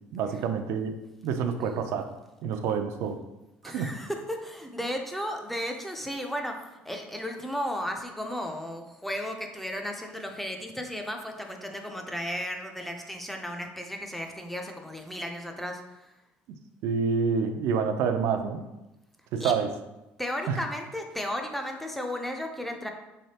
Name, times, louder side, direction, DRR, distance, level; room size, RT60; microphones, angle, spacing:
voice 1, 0.1-0.9 1.2-2.0 2.4-3.2 3.6-3.9 16.8-18.6 19.3-19.7 20.5-20.6, right 6 dB, 75° right, 7 dB, 0.4 m, -27 dB
voice 2, 3.6-16.1 19.4-19.5 20.2-22.9, equal, 5° left, 3 dB, 0.4 m, -34 dB
3.7 x 3.3 x 2.8 m, 0.96 s
cardioid pair, 115°, 5 cm